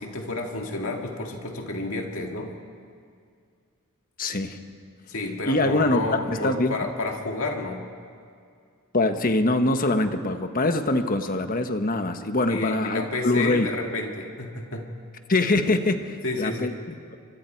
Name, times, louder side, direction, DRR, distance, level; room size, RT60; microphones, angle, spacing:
voice 1, 0.0-2.5 5.1-7.8 12.5-14.9 16.2-16.7, left 2 dB, 65° left, 2 dB, 2.1 m, -30 dB
voice 2, 4.2-4.6 5.4-6.8 8.9-13.7 15.3-17.2, left 2 dB, 40° left, 7 dB, 1.3 m, -24 dB
28.5 x 25.5 x 4.6 m, 2.2 s
head